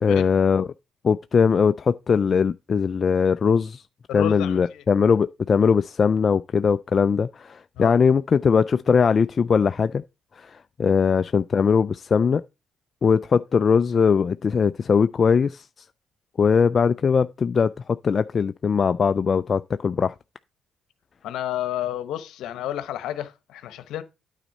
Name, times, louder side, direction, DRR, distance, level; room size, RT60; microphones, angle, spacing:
voice 1, 0.0-0.7 1.0-3.8 4.1-10.0 10.4-12.4 13.0-15.7 16.4-20.1, left 6 dB, 45° left, 0.3 m, -20 dB
voice 2, 4.1-4.8 7.8-7.9 21.2-24.0, left 12 dB, 85° left, 0.9 m, -31 dB
9.1 x 4.0 x 5.4 m
cardioid pair, 90°, 0 cm